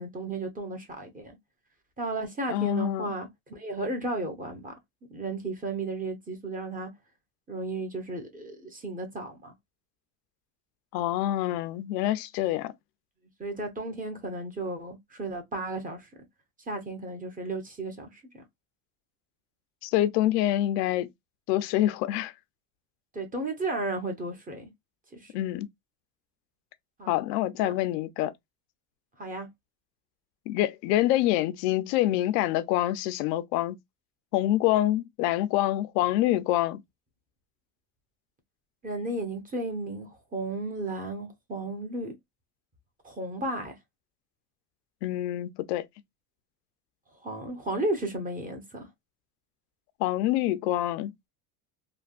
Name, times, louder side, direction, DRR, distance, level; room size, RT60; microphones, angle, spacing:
voice 1, 0.0-1.3 2.0-4.7 5.1-6.9 7.5-9.5 13.4-16.0 16.7-18.4 23.1-24.7 25.2-25.3 27.0-27.1 27.6-27.7 29.2-29.5 38.8-42.1 43.0-43.8 47.2-48.9, right 2 dB, 15° right, 0.9 m, -34 dB
voice 2, 2.5-3.1 10.9-12.7 19.8-21.1 21.5-22.3 25.3-25.7 27.1-28.3 30.5-33.8 34.3-36.8 45.0-45.9 50.0-51.1, left 14 dB, 90° left, 0.6 m, -26 dB
3.4 x 2.2 x 2.3 m
supercardioid pair, 130°, 46 cm